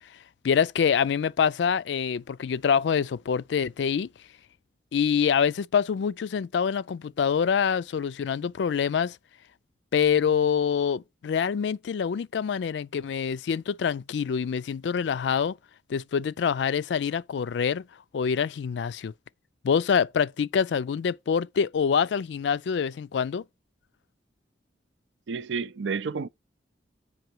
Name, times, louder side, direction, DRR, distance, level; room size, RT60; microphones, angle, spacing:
voice 1, 0.4-4.1 4.9-9.2 9.9-15.5 15.9-17.8 18.1-19.1 19.6-23.4, left 7 dB, 75° left, 0.3 m, -25 dB
voice 2, 25.3-26.3, right 5 dB, 90° right, 0.5 m, -30 dB
7.9 x 5.5 x 4.5 m
head